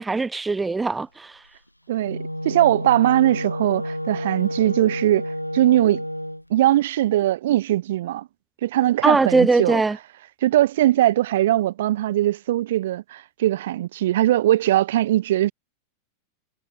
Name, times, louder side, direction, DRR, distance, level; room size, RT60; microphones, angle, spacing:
voice 1, 0.0-1.4 9.0-10.0, right 3 dB, 10° right, 0.5 m, -21 dB
Wind instrument woodwind instrument, 1.9-6.4, equal, 90° left, 1.1 m, -30 dB
voice 2, 1.9-2.2 2.4-6.0 6.5-8.3 8.6-9.8 10.4-15.5, right 14 dB, 55° right, 1.7 m, -20 dB
figure-of-eight pair, 90°, 0 cm